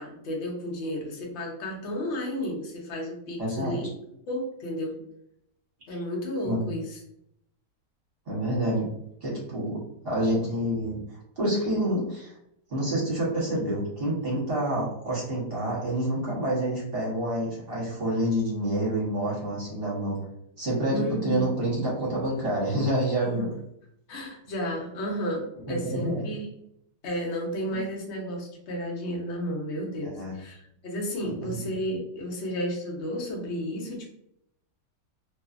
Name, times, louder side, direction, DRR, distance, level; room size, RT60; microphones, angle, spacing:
voice 1, 0.0-3.9 4.3-4.9 5.9-7.0 20.9-21.5 23.2-23.5 24.1-26.5 27.0-34.1, equal, 55° left, -1 dB, 0.8 m, -32 dB
voice 2, 3.4-3.7 6.4-6.8 8.3-8.9 9.2-11.0 11.4-12.3 12.7-20.2 20.6-23.5 25.7-26.2 27.7-27.8 30.0-30.3 31.2-31.6, right 1 dB, 40° right, -6 dB, 1.0 m, -28 dB
2.6 x 2.4 x 2.4 m, 0.76 s
omnidirectional pair, 1.8 m